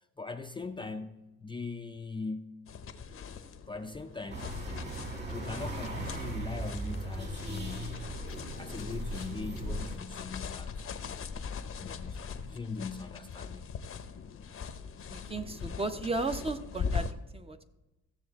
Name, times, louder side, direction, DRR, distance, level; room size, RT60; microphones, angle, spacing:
voice 1, 0.2-1.1 1.4-2.5 3.7-4.5 5.3-8.0 8.6-10.8 11.8-13.7, left 4 dB, 15° left, 5 dB, 0.5 m, -40 dB
sound 1, 2.7-17.1, left 6 dB, 45° left, 0.8 m, -41 dB
sound 2, 4.3-10.0, right 1 dB, 35° right, 2.3 m, -38 dB
voice 2, 15.1-17.1 17.3-17.6, right 3 dB, 20° right, 8 dB, 0.7 m, -34 dB
15.5 x 7.0 x 3.6 m, 1.0 s
cardioid pair, 90°, 30 cm